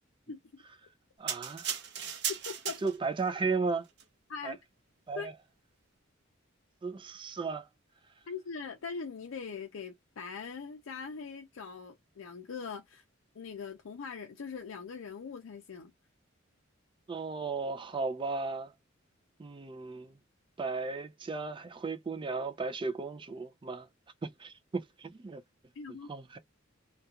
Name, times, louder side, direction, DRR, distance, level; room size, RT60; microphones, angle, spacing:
voice 1, 1.2-1.7 2.8-3.9 4.4-4.6 5.1-5.3 6.8-7.7 17.1-18.7 19.4-20.2 20.6-23.9 24.2-25.4 26.1-26.4, right 4 dB, 25° right, 0.4 m, -35 dB
sound 1, 1.3-3.2 3.9-4.0, right 8 dB, 60° right, 0.8 m, -36 dB
voice 2, 2.5-2.8 4.3-4.6 5.2-5.3 8.3-13.0 13.3-15.9 25.7-26.1, left 5 dB, 85° left, 0.5 m, -41 dB
2.4 x 2.3 x 2.7 m
head